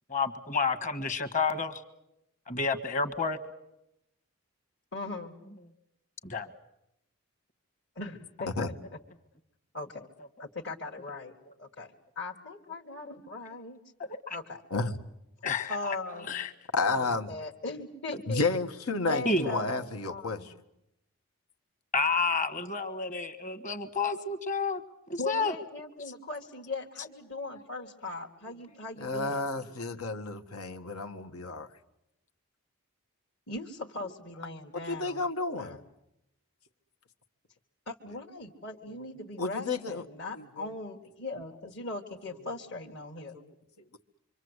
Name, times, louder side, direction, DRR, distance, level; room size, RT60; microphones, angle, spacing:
voice 1, 0.1-1.8 2.5-3.4 6.2-6.5 14.0-14.4 15.4-16.0 16.3-16.5 18.1-18.2 19.2-19.6 21.9-24.8 25.1-25.5, left 4 dB, 35° left, 9 dB, 1.5 m, -30 dB
voice 2, 4.9-5.3 7.9-8.5 9.7-10.1 10.4-11.3 11.6-13.8 14.3-14.6 15.7-16.3 16.9-18.4 19.0-19.7 20.0-20.5 25.2-29.5 33.5-35.2 35.6-35.8 37.9-43.3, left 3 dB, 55° left, -2 dB, 1.7 m, -39 dB
voice 3, 16.7-17.3 18.3-20.5 29.0-31.7 34.9-35.8 38.9-39.0 39.4-40.0 40.3-40.7 43.3-43.5, left 3 dB, 90° left, 5 dB, 1.6 m, -31 dB
26.0 x 25.5 x 8.1 m, 0.83 s
head